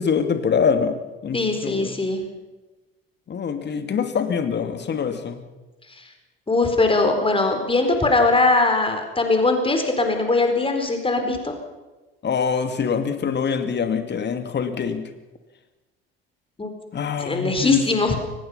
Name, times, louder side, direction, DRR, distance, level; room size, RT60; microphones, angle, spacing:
voice 1, 0.0-2.0 3.3-5.4 12.2-15.0 16.9-17.9, left 6 dB, 35° left, 8 dB, 2.6 m, -24 dB
voice 2, 1.3-2.2 6.5-11.5 16.6-16.7 17.2-18.2, left 3 dB, 20° left, 5 dB, 4.4 m, -21 dB
24.0 x 19.5 x 5.7 m, 1.1 s
figure-of-eight pair, 60°, 30 cm